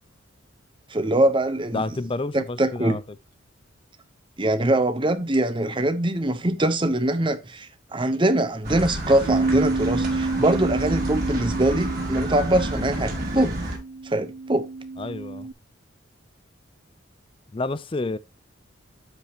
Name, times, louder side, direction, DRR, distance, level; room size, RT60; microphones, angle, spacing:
voice 1, 0.9-1.8 2.3-3.0 4.4-13.6 14.0-14.7, right 1 dB, 25° right, 0.8 m, -23 dB
voice 2, 1.7-3.0 15.0-15.5 17.5-18.2, left 2 dB, 25° left, 0.4 m, -29 dB
sound 1, 8.6-13.8, right 1 dB, 45° right, 4.7 m, -30 dB
Bass guitar, 9.3-15.5, right 3 dB, 70° right, 0.5 m, -29 dB
12.0 x 5.2 x 2.9 m
head